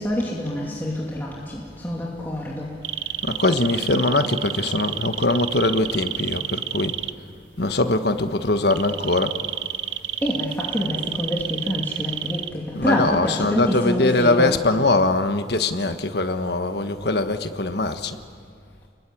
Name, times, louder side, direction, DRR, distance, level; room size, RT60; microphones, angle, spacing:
voice 1, 0.0-2.7 10.2-14.6, left 1 dB, 10° left, -4 dB, 2.6 m, -26 dB
sound 1, 2.8-7.1 8.7-12.5, right 11 dB, 85° right, 0.8 m, -29 dB
voice 2, 3.2-6.9 7.6-9.3 12.7-18.2, left 2 dB, 60° left, 8 dB, 1.4 m, -22 dB
29.5 x 22.0 x 8.7 m, 2.2 s
head